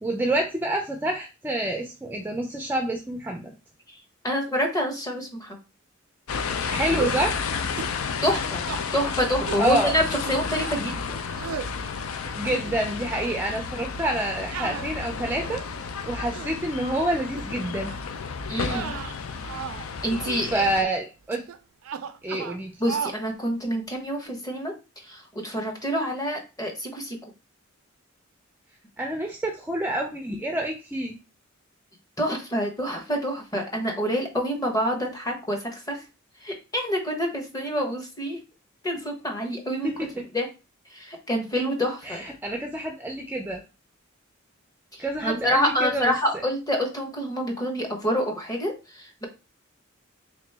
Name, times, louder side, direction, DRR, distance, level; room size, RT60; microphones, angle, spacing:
voice 1, 0.0-3.5 6.7-7.3 9.6-9.9 12.3-15.6 16.1-18.0 20.5-21.4 22.2-22.7 29.0-31.2 39.8-40.1 42.1-43.6 45.0-46.1, right 1 dB, 10° right, 2 dB, 0.4 m, -27 dB
voice 2, 4.2-5.6 8.2-8.6 8.9-11.0 18.5-18.9 20.0-20.7 22.8-24.7 25.0-27.2 32.2-36.0 36.4-38.4 38.8-40.1 40.3-40.5 40.9-42.2 44.9-49.3, equal, 20° left, 2 dB, 0.9 m, -27 dB
sound 1, 6.3-20.8, left 5 dB, 80° left, 0.4 m, -32 dB
sound 2, 7.0-7.3 7.8-8.0 8.3-8.8 9.5-9.7 10.2-10.8 11.4-11.7 12.2-12.8 13.1-13.4 14.5-15.6 16.1-16.6 17.3-17.5 17.9-18.1 18.6-19.9 20.1-20.4 21.3-21.6 21.8-22.6 22.9-23.2, right 7 dB, 80° right, 0.4 m, -35 dB
3.5 x 3.0 x 3.3 m, 0.30 s
head